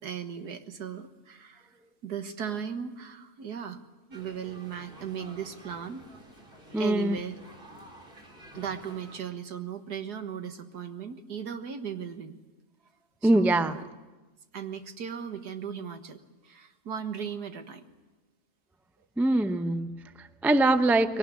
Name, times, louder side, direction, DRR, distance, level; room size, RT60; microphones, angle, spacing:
voice 1, 0.0-1.7 2.0-3.8 4.1-6.0 6.8-7.4 8.5-12.4 13.2-13.9 14.5-17.8, right 7 dB, 80° right, 8 dB, 2.0 m, -37 dB
sound 1, 4.1-9.2, right 1 dB, 35° right, 3.0 m, -50 dB
voice 2, 6.7-7.2 13.2-13.8 19.2-21.2, right 2 dB, 5° right, 10 dB, 0.3 m, -24 dB
22.0 x 18.5 x 9.8 m, 1.2 s
omnidirectional pair, 1.7 m